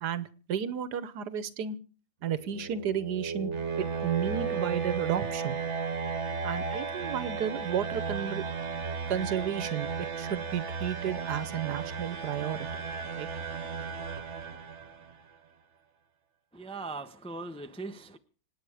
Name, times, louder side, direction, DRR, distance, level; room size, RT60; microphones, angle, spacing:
voice 1, 0.0-1.8 2.2-3.5 3.8-5.6 6.4-8.4 9.1-12.7 13.1-13.3, right 9 dB, 85° right, 16 dB, 1.5 m, -32 dB
sound 1, 2.3-15.1, right 5 dB, 50° right, 1.4 m, -35 dB
voice 2, 16.5-18.2, right 3 dB, 5° left, 8 dB, 0.4 m, -40 dB
26.5 x 9.2 x 4.9 m, 0.39 s
omnidirectional pair, 1.7 m